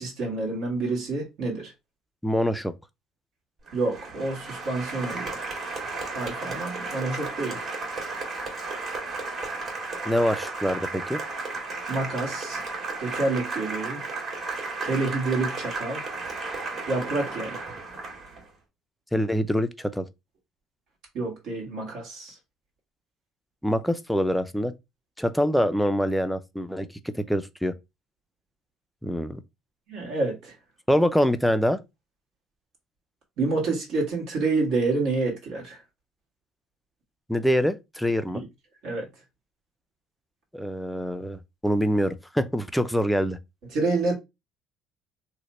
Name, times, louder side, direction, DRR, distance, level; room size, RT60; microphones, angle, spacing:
voice 1, 0.0-1.7 3.7-5.4 6.1-7.6 11.9-12.6 13.0-14.0 14.8-16.0 16.9-17.6 21.1-22.3 29.9-30.5 33.4-35.8 38.3-38.5 38.8-39.0 43.7-44.1, right 3 dB, 70° right, 1.5 m, -28 dB
voice 2, 2.2-2.7 10.1-11.2 19.1-20.1 23.6-24.7 25.2-27.7 29.0-29.4 30.9-31.8 37.3-38.4 40.5-43.4, equal, ahead, 0.4 m, -25 dB
Applause, 3.7-18.5, right 3 dB, 45° right, 1.6 m, -34 dB
3.1 x 2.1 x 4.0 m
supercardioid pair, 95°, 0 cm